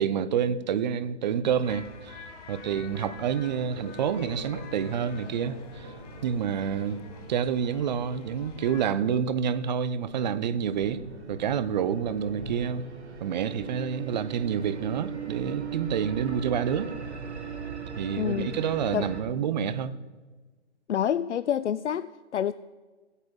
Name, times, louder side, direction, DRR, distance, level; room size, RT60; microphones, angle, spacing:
voice 1, 0.0-5.9 6.2-7.0 7.3-11.0 11.3-12.8 13.2-16.9 17.9-20.0, right 8 dB, 40° right, 0.7 m, -28 dB
sound 1, 1.5-8.8, left 4 dB, 35° left, 1.7 m, -47 dB
sound 2, 2.7-15.7, right 2 dB, 15° right, 0.3 m, -44 dB
sound 3, 10.1-19.2, right 7 dB, 65° right, 1.9 m, -39 dB
voice 2, 18.2-18.7 18.9-19.1 20.9-22.5, left 9 dB, 75° left, 0.5 m, -28 dB
16.5 x 8.3 x 5.3 m
figure-of-eight pair, 130°, 35 cm